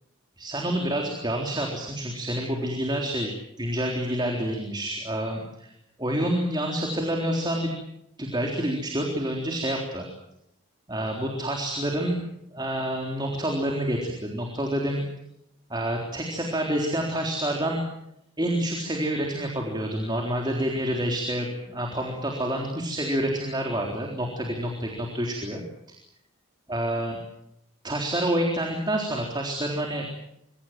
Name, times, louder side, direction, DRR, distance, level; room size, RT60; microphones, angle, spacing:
voice 1, 0.4-3.3 3.6-5.7 6.0-7.7 8.2-10.1 10.9-12.3 12.5-15.1 15.7-17.8 18.4-25.6 26.7-27.2 27.8-30.1, right 1 dB, 20° right, 1 dB, 3.8 m, -28 dB
26.5 x 24.5 x 7.6 m, 0.80 s
head